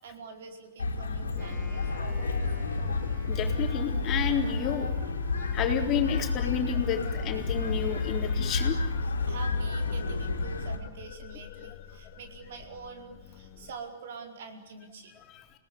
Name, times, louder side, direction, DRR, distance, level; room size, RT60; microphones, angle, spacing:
voice 1, 0.0-2.6 9.3-15.1, right 4 dB, 60° right, 5 dB, 4.6 m, -45 dB
sound 1, 0.8-10.8, left 3 dB, 80° left, 3.5 m, -30 dB
sound 2, 1.2-13.7, left 8 dB, 45° left, 2.5 m, -46 dB
Wind instrument woodwind instrument, 1.3-9.3, equal, 10° right, 6.0 m, -51 dB
voice 2, 3.3-4.9 5.5-8.8 15.3-15.4, left 8 dB, 30° left, 4 dB, 3.8 m, -30 dB
29.5 x 19.0 x 9.7 m, 1.1 s
figure-of-eight pair, 110°, 0 cm